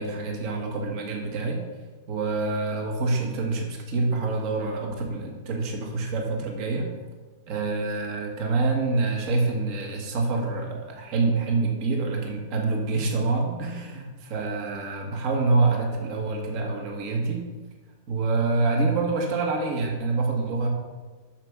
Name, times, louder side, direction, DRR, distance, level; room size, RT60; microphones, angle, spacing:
voice 1, 0.0-1.6 2.1-6.9 7.5-17.5 18.1-20.7, right 3 dB, 35° right, 2 dB, 1.5 m, -26 dB
7.5 x 6.5 x 6.0 m, 1.3 s
supercardioid pair, 175°, 0 cm